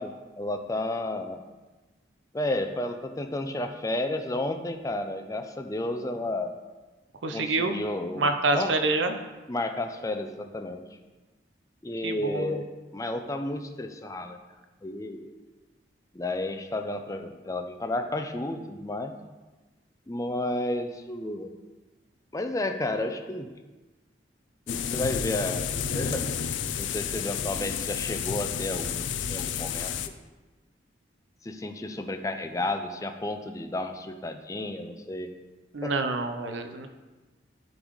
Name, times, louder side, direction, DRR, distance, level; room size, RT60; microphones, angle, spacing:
voice 1, 0.0-1.4 2.3-6.5 7.3-8.7 9.5-10.8 11.8-12.7 12.9-14.4 14.8-15.3 16.1-19.2 20.1-21.6 22.3-23.5 24.7-25.7 25.9-26.3 26.8-29.9 31.4-35.3 35.8-35.9, left 1 dB, 20° left, 6 dB, 0.4 m, -32 dB
voice 2, 7.2-7.8 8.1-9.2 12.0-12.6 35.7-36.9, right 3 dB, 90° right, 7 dB, 0.6 m, -27 dB
sound 1, 24.7-30.1, left 7 dB, 90° left, 0.4 m, -31 dB
11.5 x 3.9 x 3.2 m, 1.2 s
head